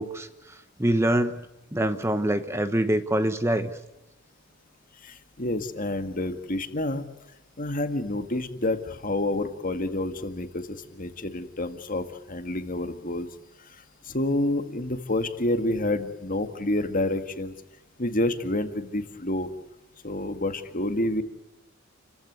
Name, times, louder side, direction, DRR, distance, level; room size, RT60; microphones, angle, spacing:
voice 1, 0.0-1.4 1.7-3.8, right 1 dB, 15° right, 10 dB, 1.0 m, -25 dB
voice 2, 5.0-7.0 7.6-13.3 14.1-17.5 18.0-19.5 20.0-21.2, left 1 dB, 40° left, 8 dB, 2.0 m, -28 dB
29.5 x 15.5 x 9.6 m, 0.99 s
head